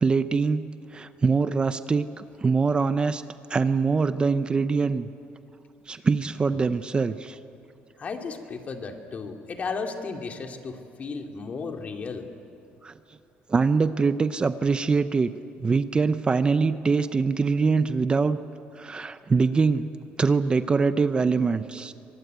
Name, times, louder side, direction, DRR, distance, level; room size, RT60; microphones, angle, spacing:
voice 1, 0.0-3.2 3.5-5.1 5.9-7.4 12.8-12.9 13.5-15.3 15.6-18.4 18.8-19.9 20.2-21.9, right 4 dB, 25° right, 11 dB, 0.7 m, -23 dB
voice 2, 8.0-12.3, left 4 dB, 40° left, 4 dB, 2.4 m, -34 dB
24.5 x 19.5 x 9.4 m, 2.6 s
cardioid pair, 115°, 4 cm